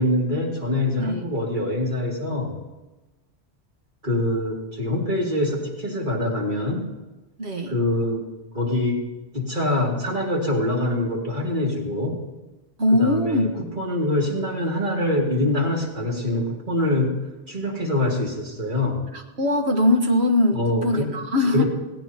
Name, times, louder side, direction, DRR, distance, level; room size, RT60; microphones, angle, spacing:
voice 1, 0.0-2.6 4.0-6.9 7.7-8.2 8.5-9.1 9.3-12.2 12.9-13.5 13.8-17.2 17.5-19.1 20.5-21.1 21.5-21.6, left 1 dB, 45° right, -2 dB, 2.8 m, -24 dB
voice 2, 7.4-7.7 12.8-13.5 19.1-21.6, left 1 dB, 65° right, 4 dB, 1.7 m, -21 dB
18.0 x 16.5 x 3.0 m, 1.1 s
omnidirectional pair, 1.2 m